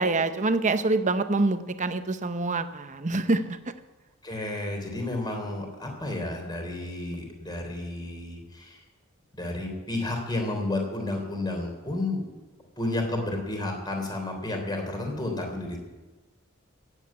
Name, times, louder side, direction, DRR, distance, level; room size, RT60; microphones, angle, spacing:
voice 1, 0.0-3.6, right 2 dB, 35° right, 10 dB, 0.8 m, -25 dB
voice 2, 4.2-8.8 9.3-12.2 12.8-15.8, left 2 dB, 20° left, 2 dB, 3.3 m, -31 dB
17.5 x 8.2 x 8.7 m, 1.2 s
head